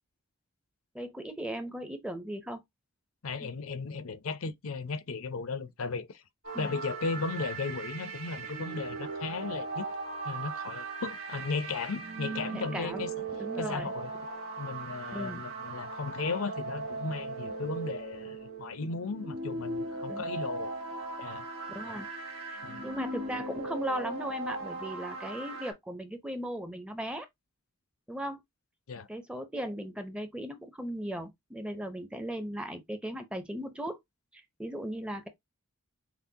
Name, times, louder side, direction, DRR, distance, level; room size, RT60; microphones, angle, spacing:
voice 1, 0.9-2.6 3.4-3.5 6.5-6.8 12.5-13.1 13.4-13.9 15.1-15.4 20.1-20.3 21.7-22.1 22.5-27.3 28.1-28.4 29.1-34.0 34.3-35.3, equal, 5° right, 0.5 m, -37 dB
voice 2, 3.2-6.2 6.6-9.9 10.2-13.1 13.6-14.1 14.6-20.7 21.2-21.5 22.6-22.8 28.9-29.1, left 4 dB, 75° left, 0.6 m, -36 dB
sound 1, 6.4-25.7, right 3 dB, 65° right, 1.7 m, -38 dB
5.9 x 2.1 x 2.7 m
head